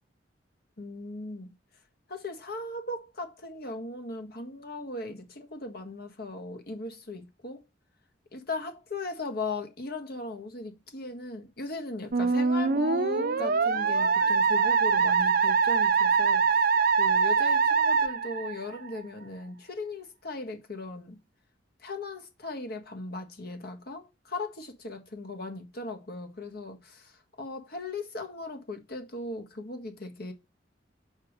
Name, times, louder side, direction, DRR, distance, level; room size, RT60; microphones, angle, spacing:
voice 1, 0.8-1.5 2.1-7.6 8.3-16.5 17.0-21.2 21.8-27.1 27.4-30.3, left 2 dB, 60° left, 1.6 m, -38 dB
Musical instrument, 12.1-19.0, right 5 dB, 55° right, 0.7 m, -24 dB
5.4 x 5.1 x 6.6 m
head